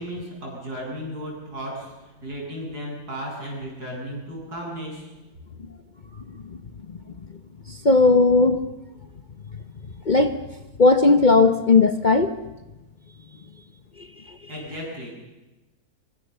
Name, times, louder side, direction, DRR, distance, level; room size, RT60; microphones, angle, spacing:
voice 1, 0.0-5.1 14.5-15.1, equal, 75° right, -2 dB, 8.8 m, -34 dB
voice 2, 7.7-8.7 10.0-10.4 10.8-12.3 14.0-14.4, left 3 dB, 35° left, 8 dB, 0.9 m, -17 dB
25.0 x 23.5 x 6.9 m, 1.1 s
omnidirectional pair, 1.7 m